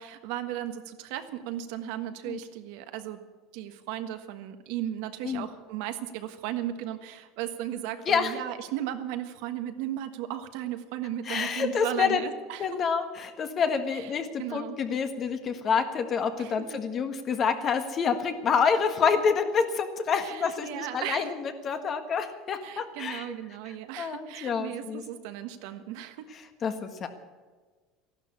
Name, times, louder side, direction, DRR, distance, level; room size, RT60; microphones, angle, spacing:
voice 1, 0.0-3.2 3.5-12.7 13.9-14.1 14.4-14.8 16.4-16.8 20.2-21.3 22.6-26.3, right 12 dB, 75° right, 8 dB, 1.4 m, -36 dB
voice 2, 11.3-12.2 12.6-23.2 24.0-25.0 26.6-27.1, left 6 dB, 35° left, 8 dB, 1.6 m, -28 dB
14.0 x 12.0 x 8.3 m, 1.4 s
supercardioid pair, 130°, 0 cm